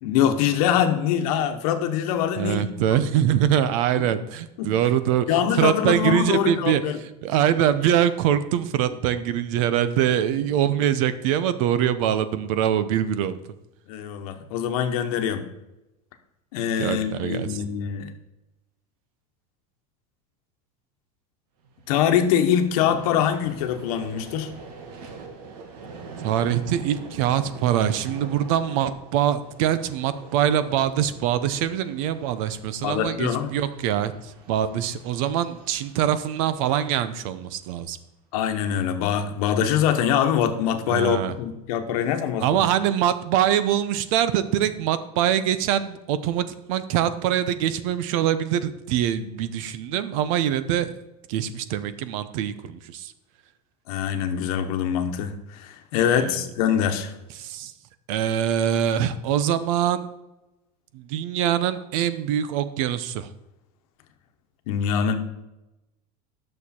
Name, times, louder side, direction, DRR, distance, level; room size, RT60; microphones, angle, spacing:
voice 1, 0.0-2.7 4.0-4.1 4.6-4.7 5.3-7.0 13.9-15.5 16.5-18.1 21.9-24.5 32.8-33.5 38.3-42.7 53.9-57.1 64.7-65.2, left 9 dB, 70° left, 7 dB, 1.1 m, -24 dB
voice 2, 2.4-6.8 7.2-13.4 16.8-17.6 26.2-38.0 40.9-41.3 42.4-50.9 51.3-53.1 56.2-56.5 57.4-57.7 58.1-60.1 60.9-63.3, right 10 dB, 60° right, 13 dB, 0.7 m, -24 dB
Vehicle, 21.6-38.0, right 4 dB, 80° right, 1.6 m, -44 dB
11.0 x 6.6 x 4.3 m, 0.96 s
supercardioid pair, 165°, 20 cm